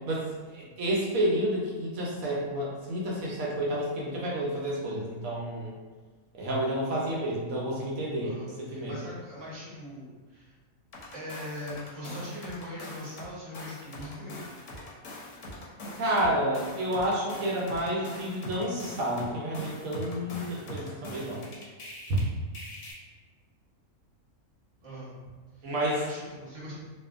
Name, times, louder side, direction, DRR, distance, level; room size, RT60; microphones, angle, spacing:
voice 1, 0.5-5.7 6.3-8.3 8.6-8.9 16.0-21.4 25.6-26.0, right 1 dB, 80° right, -5 dB, 1.0 m, -30 dB
voice 2, 8.2-10.6 11.1-14.3 24.8-25.1 25.6-26.8, left 1 dB, 20° right, -9 dB, 1.0 m, -41 dB
sound 1, 10.9-13.3 13.5-22.2 22.5-22.9, left 1 dB, 65° left, 1.0 m, -42 dB
2.6 x 2.4 x 2.3 m, 1.4 s
omnidirectional pair, 1.4 m